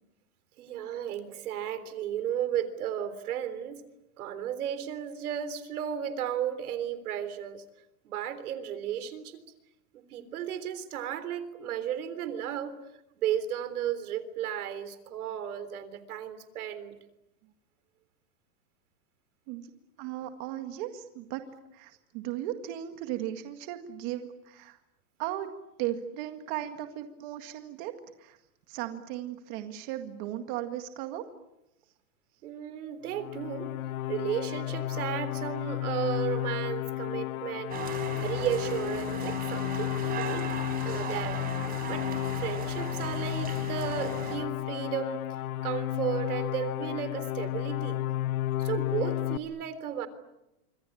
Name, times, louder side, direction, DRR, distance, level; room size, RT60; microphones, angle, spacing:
voice 1, 0.6-3.8 4.2-7.6 8.0-9.4 9.9-12.7 13.2-17.0 32.4-33.7 34.1-40.5 40.8-41.4 41.9-42.1 42.4-45.2 45.6-48.0 48.6-50.1, right 9 dB, 85° right, 13 dB, 3.7 m, -34 dB
voice 2, 20.0-21.4 21.7-24.8 25.2-25.5 25.8-27.9 28.2-28.4 28.7-31.2, right 12 dB, 35° right, 6 dB, 2.0 m, -36 dB
sound 1, 33.1-49.4, left 14 dB, 70° left, 1.3 m, -32 dB
sound 2, 37.7-44.4, right 7 dB, 20° right, 4.1 m, -38 dB
27.0 x 25.0 x 8.6 m, 0.90 s
supercardioid pair, 175°, 43 cm